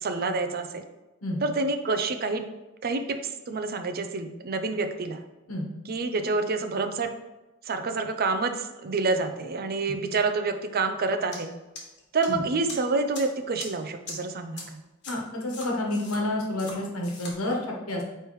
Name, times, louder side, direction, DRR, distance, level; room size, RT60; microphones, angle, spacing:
voice 1, 0.0-0.8 1.4-2.4 2.8-5.2 5.9-7.1 7.7-11.5 12.1-14.8, right 3 dB, 45° right, 7 dB, 0.5 m, -28 dB
sound 1, 11.3-11.4 11.8-12.3 12.7-12.8 13.1-13.2 13.6-13.7 14.1-14.2 14.6-14.7 15.0-15.1 15.5-16.2 16.6-16.7 17.0-17.3, left 3 dB, 55° left, 1.5 m, -39 dB
voice 2, 15.1-18.0, left 1 dB, 80° left, -1 dB, 1.3 m, -29 dB
9.0 x 3.4 x 3.1 m, 1.1 s
head